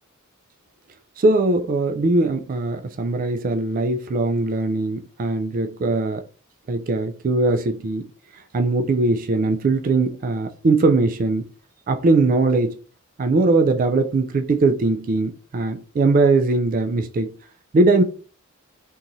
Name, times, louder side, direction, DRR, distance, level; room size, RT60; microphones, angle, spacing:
voice 1, 1.2-6.2 6.7-8.1 8.3-11.4 11.9-12.8 13.2-17.3 17.7-18.0, right 3 dB, 40° right, 0.3 m, -20 dB
3.7 x 2.9 x 2.6 m
head